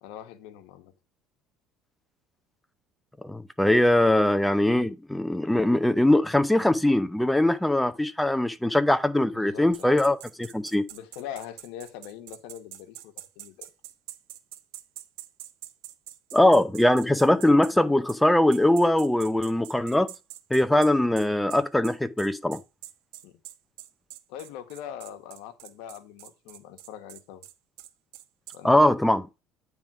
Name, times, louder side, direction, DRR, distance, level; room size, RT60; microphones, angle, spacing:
voice 1, 0.0-0.9 9.3-10.0 10.9-13.7 23.2-23.4 24.3-27.4 28.5-28.8, left 10 dB, 80° left, 1.1 m, -42 dB
voice 2, 3.2-10.8 16.3-20.1 20.5-22.6 28.6-29.3, left 1 dB, 5° left, 0.6 m, -21 dB
sound 1, 9.7-17.7 18.1-18.2 18.5-28.6, right 14 dB, 85° right, 0.7 m, -45 dB
9.0 x 3.5 x 4.7 m
cardioid pair, 130°, 0 cm